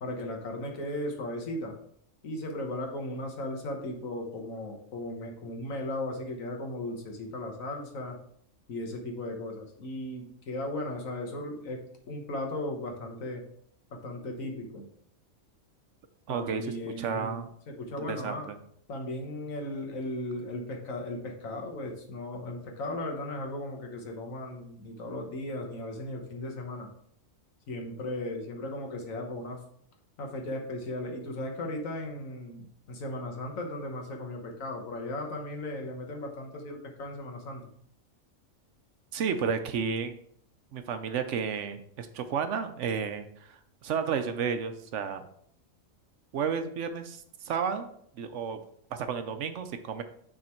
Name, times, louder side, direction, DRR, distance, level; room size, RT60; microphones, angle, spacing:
voice 1, 0.0-1.7 2.2-8.2 8.7-13.4 13.9-14.9 16.3-18.5 18.9-26.9 27.7-29.6 30.2-37.6, left 1 dB, 85° left, 2 dB, 1.6 m, -36 dB
voice 2, 16.3-17.5 18.0-18.6 39.1-40.2 40.7-45.2 46.3-47.9 48.2-48.6 48.9-50.0, right 6 dB, 70° right, 9 dB, 0.9 m, -32 dB
6.4 x 3.7 x 4.4 m, 0.65 s
omnidirectional pair, 1.4 m